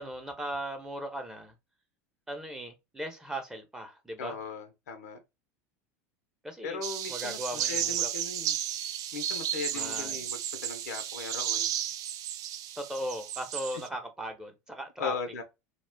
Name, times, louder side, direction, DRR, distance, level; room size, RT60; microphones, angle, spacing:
voice 1, 0.0-1.5 2.3-4.4 6.4-6.8 7.1-8.1 9.7-10.3 12.8-15.1, right 1 dB, 10° right, 0.9 m, -38 dB
voice 2, 4.2-5.2 6.6-8.6 9.1-11.7 15.0-15.4, left 5 dB, 85° left, 0.8 m, -38 dB
sound 1, 6.8-13.9, right 11 dB, 45° right, 0.4 m, -33 dB
2.4 x 2.3 x 3.4 m
hypercardioid pair, 100°, 8 cm